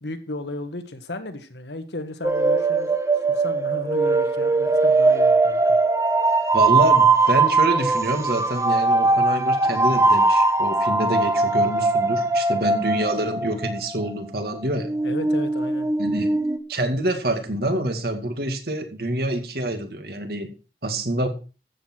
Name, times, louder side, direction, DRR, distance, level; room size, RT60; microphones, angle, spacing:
voice 1, 0.0-3.0 3.3-5.8 15.0-16.2, left 2 dB, 75° left, 8 dB, 1.7 m, -35 dB
sound 1, 2.2-14.1 14.4-16.6, right 3 dB, 15° right, 0.9 m, -20 dB
voice 2, 6.5-14.9 16.0-16.3 16.7-20.5 20.8-21.3, right 1 dB, 55° right, 6 dB, 2.3 m, -26 dB
13.5 x 8.4 x 4.6 m, 0.34 s
head